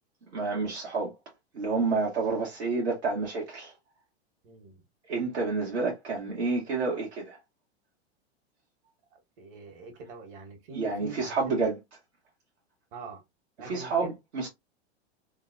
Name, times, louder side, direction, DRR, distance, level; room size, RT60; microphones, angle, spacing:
voice 1, 0.3-1.1 1.5-3.7 5.1-7.4 10.7-11.8 13.6-14.5, right 4 dB, 80° right, 1.2 m, -29 dB
voice 2, 4.4-4.8 9.4-11.5 12.9-13.2 13.6-14.1, right 4 dB, 55° right, 1.3 m, -43 dB
3.2 x 2.1 x 2.5 m
hypercardioid pair, 110°, 33 cm